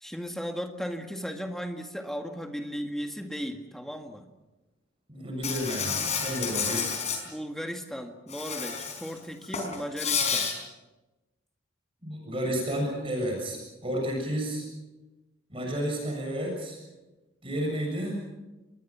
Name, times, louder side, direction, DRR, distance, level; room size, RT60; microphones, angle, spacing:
voice 1, 0.0-4.3 5.5-5.7 7.3-10.5, equal, ahead, 4 dB, 1.8 m, -36 dB
voice 2, 5.1-6.9 12.0-14.7 15.5-16.8 17.4-18.2, equal, 25° right, 0 dB, 7.1 m, -31 dB
Insect, 5.4-7.2 8.3-9.1 9.4-10.5, left 6 dB, 35° left, 4.8 m, -30 dB
29.0 x 21.5 x 6.0 m, 1.1 s
head